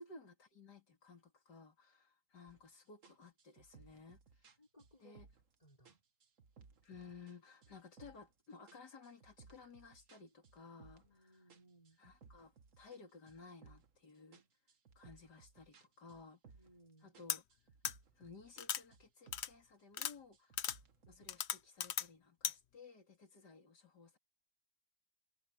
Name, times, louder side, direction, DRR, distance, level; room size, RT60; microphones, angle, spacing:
voice 1, 0.0-4.6 5.0-5.3 6.8-11.5 12.0-14.7 15.0-16.6 17.0-17.8 18.1-20.7 21.1-24.2, left 4 dB, 85° left, 4.0 m, -57 dB
sound 1, 2.5-2.7 3.0-5.5 5.8-7.4 7.6-8.3 8.7-11.2 11.5-14.0 14.3-16.9 17.1-18.6 18.9-19.6 20.0-21.4, right 5 dB, 50° right, 1.8 m, -63 dB
voice 2, 4.6-5.2 5.6-6.0 11.0-12.0 16.5-17.2 20.5-20.8, right 1 dB, 20° left, 4.7 m, -66 dB
sound 2, 17.3-17.4 17.8-17.9 18.6-18.8 19.3-19.5 19.9-20.1 20.6-20.8 21.3-22.1 22.4-22.5, left 9 dB, 55° left, 0.8 m, -37 dB
omnidirectional pair, 1.7 m